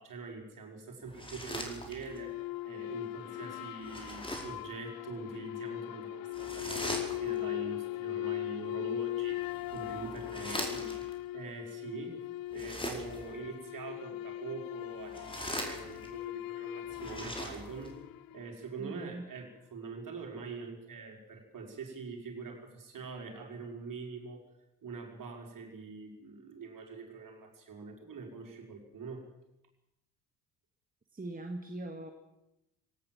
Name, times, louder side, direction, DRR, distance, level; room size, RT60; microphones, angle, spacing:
voice 1, 0.0-11.1 11.3-12.2 12.5-18.0 18.3-24.4 24.8-29.2, right 4 dB, 45° right, 1 dB, 5.2 m, -44 dB
sound 1, 1.1-2.3 3.8-4.7 6.3-7.5 9.3-11.1 12.5-13.3 14.9-16.2 16.9-17.9, equal, 10° left, 4.8 m, -41 dB
sound 2, 2.0-18.6, left 16 dB, 50° left, 0.7 m, -39 dB
voice 2, 18.8-19.2 31.1-32.1, right 2 dB, 20° right, 4 dB, 2.0 m, -41 dB
19.5 x 18.0 x 7.7 m, 0.88 s
figure-of-eight pair, 45°, 46 cm